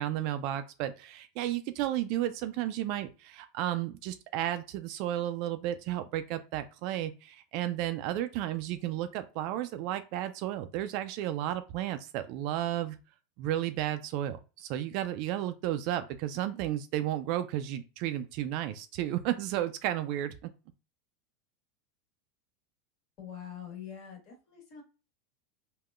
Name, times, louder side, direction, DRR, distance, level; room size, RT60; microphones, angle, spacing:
voice 1, 0.0-13.0 13.4-20.5, right 12 dB, 60° right, 10 dB, 0.3 m, -33 dB
voice 2, 23.2-24.8, left 9 dB, 50° left, 1 dB, 1.4 m, -44 dB
3.6 x 2.2 x 2.3 m, 0.33 s
hypercardioid pair, 110°, 0 cm